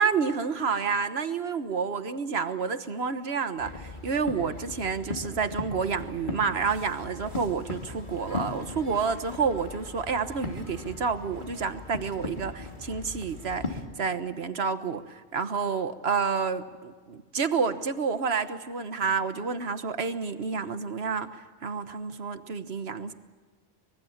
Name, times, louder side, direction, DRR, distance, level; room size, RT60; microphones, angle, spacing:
voice 1, 0.0-23.1, right 5 dB, 65° right, 10 dB, 1.5 m, -29 dB
sound 1, 3.6-13.8, left 3 dB, 45° left, 3.1 m, -38 dB
25.0 x 22.0 x 7.3 m, 1.5 s
omnidirectional pair, 1.1 m